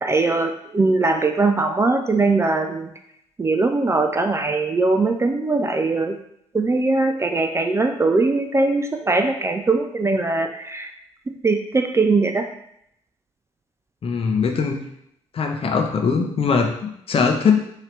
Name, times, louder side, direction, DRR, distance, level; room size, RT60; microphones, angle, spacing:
voice 1, 0.0-2.9 3.4-6.2 6.5-10.9 11.4-12.5, right 3 dB, 20° right, 5 dB, 0.4 m, -20 dB
voice 2, 14.0-14.8 15.3-17.6, left 5 dB, 40° left, 4 dB, 0.7 m, -21 dB
4.8 x 2.8 x 3.2 m, 0.74 s
figure-of-eight pair, 45°, 15 cm